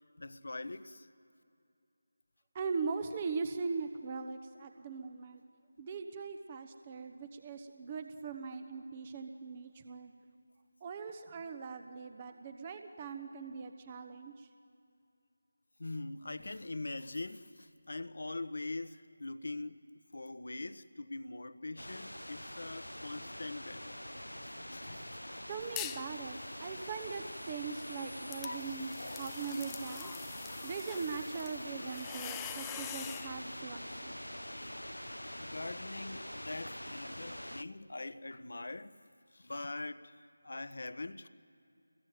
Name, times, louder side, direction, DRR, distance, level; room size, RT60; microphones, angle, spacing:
voice 1, 0.2-1.1 15.8-19.8 20.1-24.0 24.7-25.2 28.4-28.6 29.0-29.3 35.4-38.9 39.3-40.1 40.4-41.3, left 2 dB, 60° left, 1.3 m, -42 dB
voice 2, 2.5-5.4 5.8-10.1 10.8-14.5 25.5-30.1 30.6-34.1, right 5 dB, 25° right, 1.2 m, -40 dB
sound 1, 21.8-37.6, left 1 dB, 90° left, 1.0 m, -44 dB
sound 2, 25.8-26.1 26.5-33.3, left 14 dB, 10° left, 0.6 m, -46 dB
28.5 x 22.0 x 9.3 m
figure-of-eight pair, 160°, 0 cm